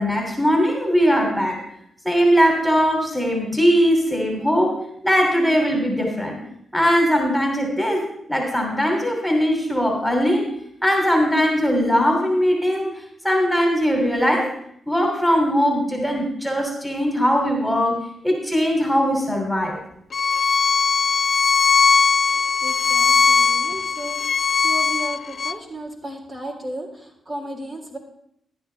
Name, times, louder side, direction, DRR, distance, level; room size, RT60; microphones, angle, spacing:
voice 1, 0.0-1.6 2.0-4.8 5.0-6.4 6.7-10.5 10.8-14.5 14.9-19.8, equal, ahead, 1 dB, 2.8 m, -20 dB
Bowed string instrument, 20.1-25.5, left 5 dB, 55° left, 0.4 m, -19 dB
voice 2, 22.6-28.0, right 1 dB, 40° right, -1 dB, 3.6 m, -34 dB
13.5 x 10.5 x 3.4 m, 0.72 s
cardioid pair, 65°, 0 cm